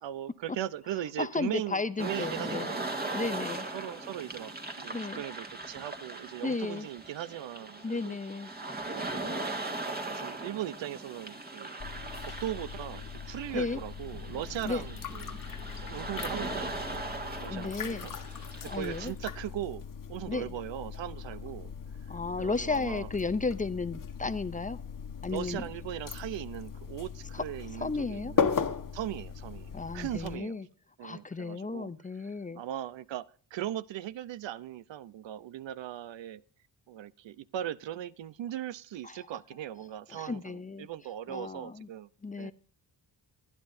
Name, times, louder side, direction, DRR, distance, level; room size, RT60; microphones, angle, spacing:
voice 1, 0.0-3.3 3.7-8.2 8.9-9.5 10.1-11.7 12.2-15.4 15.8-17.1 17.4-18.2 18.6-19.8 20.1-21.7 22.4-23.1 25.3-28.5 28.9-30.6 31.0-31.9 32.5-36.4 36.9-42.1 42.4-42.5, right 12 dB, 80° right, 0.7 m, -39 dB
voice 2, 1.2-2.7 3.1-3.7 4.9-5.2 6.4-6.9 7.8-8.5 13.5-13.8 14.6-14.8 17.4-18.1 18.7-19.1 20.3-20.5 22.1-24.8 25.2-25.7 27.3-27.4 27.7-28.3 29.7-30.7 31.0-32.6 39.0-39.2 40.1-40.9 41.3-41.9 42.2-42.5, left 3 dB, 20° left, 0.5 m, -34 dB
sound 1, 2.0-19.1, right 2 dB, 20° right, 1.7 m, -39 dB
sound 2, 11.8-30.4, left 6 dB, 45° left, 1.3 m, -38 dB
24.0 x 9.8 x 2.6 m
wide cardioid pair, 130°, 44 cm